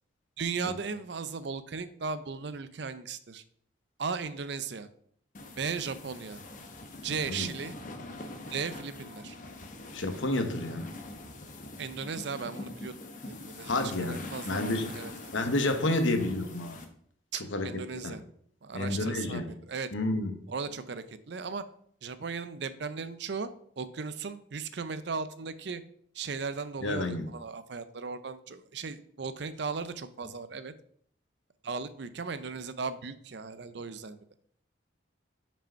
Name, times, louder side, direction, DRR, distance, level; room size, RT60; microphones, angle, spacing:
voice 1, 0.4-3.4 4.0-4.9 5.6-6.4 7.0-7.8 8.5-9.4 11.8-12.9 13.2-15.5 17.3-18.2 18.6-19.9 20.5-21.6 22.0-23.5 23.8-25.8 26.1-30.7 31.6-34.2, right 5 dB, 60° right, 13 dB, 0.5 m, -37 dB
sound 1, 5.3-16.8, left 2 dB, 40° left, 0.9 m, -44 dB
voice 2, 9.9-10.9 13.7-14.2 14.4-14.9 15.3-16.8 17.5-17.7 17.9-18.2 18.7-19.5 19.9-20.3 26.8-27.2, left 2 dB, 75° left, 6 dB, 1.1 m, -30 dB
5.5 x 5.1 x 5.6 m, 0.64 s
head